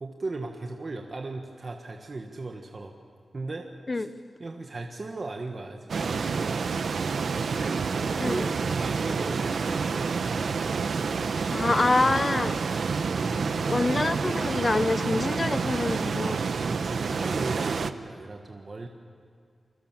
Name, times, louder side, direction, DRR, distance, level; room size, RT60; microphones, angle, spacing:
voice 1, 0.0-3.0 3.3-3.7 3.9-4.1 4.4-6.7 7.5-10.7 13.2-13.7 16.7-18.9, right 3 dB, 40° right, 3 dB, 1.4 m, -37 dB
sound 1, 5.9-17.9, right 5 dB, 75° right, 0.9 m, -28 dB
voice 2, 11.5-12.6 13.6-16.4, left 2 dB, 30° left, 12 dB, 0.9 m, -26 dB
29.0 x 22.0 x 7.5 m, 2.4 s
wide cardioid pair, 155°, 0 cm